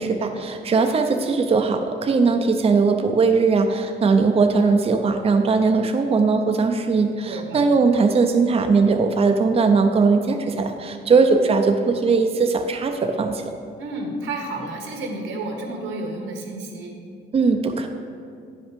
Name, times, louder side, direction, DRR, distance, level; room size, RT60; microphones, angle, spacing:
voice 1, 0.0-13.5 17.3-17.9, right 4 dB, 30° right, 5 dB, 0.5 m, -19 dB
voice 2, 7.2-7.6 13.8-17.0, right 2 dB, 85° right, 1 dB, 1.5 m, -31 dB
9.4 x 5.3 x 5.1 m, 2.4 s
cardioid pair, 90°, 20 cm